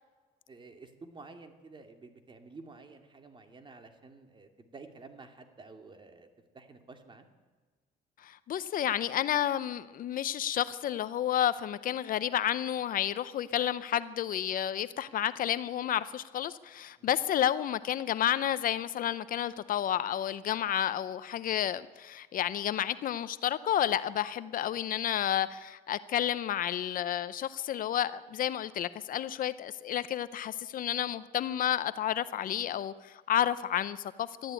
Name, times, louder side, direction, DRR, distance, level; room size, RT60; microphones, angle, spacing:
voice 1, 0.5-6.3 6.5-7.3 17.0-17.1, right 3 dB, 30° right, 6 dB, 2.5 m, -51 dB
voice 2, 8.2-34.5, left 11 dB, 55° left, 15 dB, 0.7 m, -31 dB
22.0 x 13.5 x 9.1 m, 1.4 s
cardioid pair, 110°, 17 cm